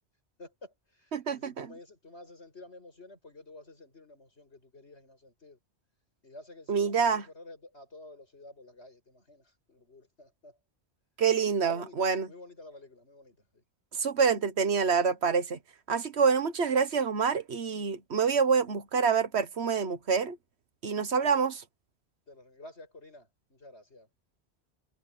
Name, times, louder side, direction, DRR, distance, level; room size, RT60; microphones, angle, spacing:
voice 1, 0.4-5.6 6.2-10.6 11.6-12.0 12.3-13.6 22.3-24.1, left 2 dB, 80° left, 7.4 m, -50 dB
voice 2, 1.1-1.7 6.7-7.2 11.2-12.3 13.9-15.6 15.9-20.4 20.8-21.6, right 6 dB, 75° right, 1.5 m, -27 dB
omnidirectional pair, 1.1 m